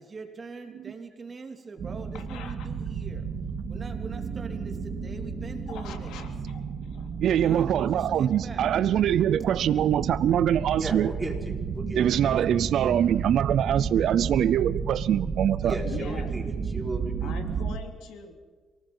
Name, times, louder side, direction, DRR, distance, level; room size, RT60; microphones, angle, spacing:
voice 1, 0.0-3.3 3.7-6.2 7.3-8.7 12.8-13.2, right 4 dB, 35° right, 4 dB, 3.1 m, -43 dB
sound 1, 1.8-17.8, right 5 dB, 55° right, 1.9 m, -32 dB
voice 2, 2.1-2.7 5.7-7.1 15.8-16.3 17.2-18.3, left 6 dB, 85° left, 5 dB, 3.0 m, -42 dB
voice 3, 7.2-11.1 11.9-15.8, right 10 dB, 70° right, 16 dB, 0.5 m, -23 dB
voice 4, 10.8-12.0 15.6-17.3, right 2 dB, 15° right, 1 dB, 4.7 m, -35 dB
27.0 x 18.5 x 5.6 m, 1.5 s
cardioid pair, 90°, 0 cm